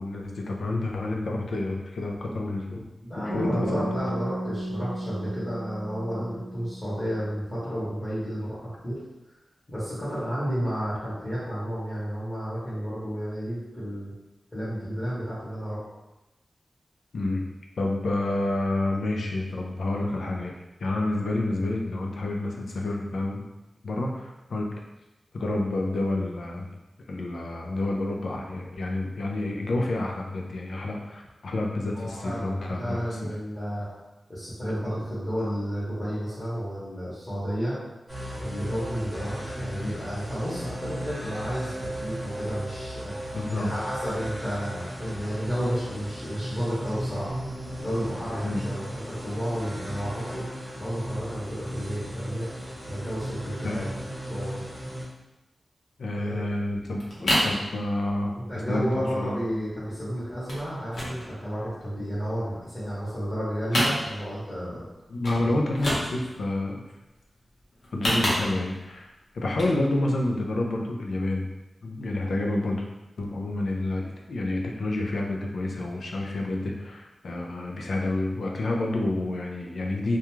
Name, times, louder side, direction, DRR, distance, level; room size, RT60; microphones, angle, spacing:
voice 1, 0.0-2.8 3.2-3.9 17.1-17.4 17.8-20.5 20.8-23.4 23.8-24.7 25.3-26.7 27.1-33.3 43.3-43.7 48.4-48.6 53.6-54.0 56.0-58.3 58.7-58.9 59.2-59.3 65.1-66.8 67.9-71.5 71.8-72.8 73.2-80.2, left 2 dB, 80° left, 0 dB, 0.4 m, -29 dB
voice 2, 3.1-9.0 9.7-14.1 14.5-15.8 31.9-33.9 34.3-37.8 38.4-43.1 43.5-47.3 47.8-50.4 50.8-52.5 52.9-53.9 54.3-54.6 56.2-56.4 58.3-64.9 65.4-65.5 68.1-68.3, equal, 20° left, -11 dB, 0.9 m, -32 dB
sound 1, 3.3-7.5, right 1 dB, 55° right, 0.6 m, -35 dB
sound 2, 38.1-55.1, equal, 15° right, 0.9 m, -36 dB
sound 3, 56.7-57.6 58.0-58.3 58.6-58.7 58.9-59.2 59.5-60.0 60.5-60.7 60.9-62.2 62.6-63.3 63.6-64.5 64.8-64.9 65.2-65.4 65.7-66.4 67.7-68.8 69.4-69.8 70.2-70.3, equal, 65° left, 0.9 m, -28 dB
2.4 x 2.2 x 3.0 m, 0.99 s
wide cardioid pair, 115°, 0 cm